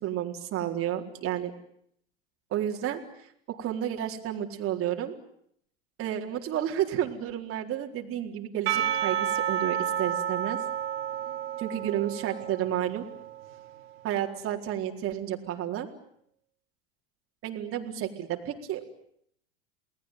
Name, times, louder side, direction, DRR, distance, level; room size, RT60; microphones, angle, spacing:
voice 1, 0.0-1.5 2.5-3.0 3.5-5.1 6.0-10.6 11.6-13.1 14.0-15.9 17.4-18.8, right 11 dB, 45° right, 2 dB, 4.3 m, -31 dB
Percussion / Church bell, 8.7-13.9, right 9 dB, 75° right, 3.8 m, -31 dB
29.5 x 20.0 x 9.4 m, 0.71 s
hypercardioid pair, 95°, 30 cm